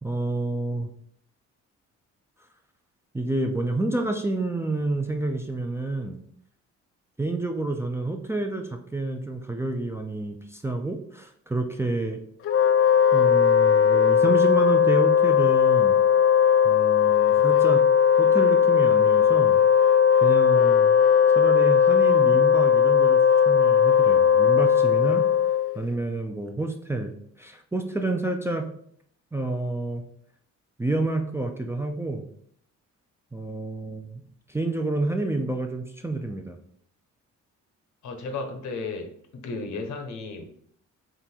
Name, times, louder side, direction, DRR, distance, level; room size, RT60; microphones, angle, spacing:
voice 1, 0.0-0.9 3.1-6.2 7.2-12.2 13.1-16.0 16.6-17.8 18.2-19.6 20.2-21.0 21.3-23.2 23.5-25.2 25.8-27.1 27.4-28.7 29.3-30.0 30.8-32.3 33.3-34.2 34.5-36.6, right 2 dB, 10° right, 3 dB, 0.4 m, -29 dB
Wind instrument woodwind instrument, 12.4-25.8, left 8 dB, 50° left, 0.4 m, -18 dB
voice 2, 38.0-40.5, left 3 dB, 70° left, 5 dB, 1.0 m, -34 dB
3.8 x 3.0 x 4.4 m, 0.64 s
cardioid pair, 90°, 30 cm